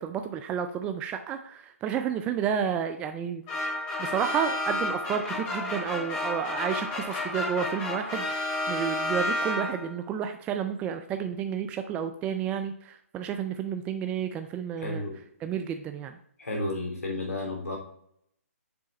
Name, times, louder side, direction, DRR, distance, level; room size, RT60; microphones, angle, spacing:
voice 1, 0.0-3.4 4.0-15.0 15.4-16.2, right 8 dB, 15° right, 7 dB, 0.4 m, -31 dB
sound 1, 3.5-10.0, left 2 dB, 30° left, 2.9 m, -31 dB
voice 2, 14.8-15.2 16.4-17.8, left 2 dB, 75° left, 0 dB, 2.9 m, -32 dB
6.9 x 4.7 x 4.2 m, 0.66 s
figure-of-eight pair, 135°, 8 cm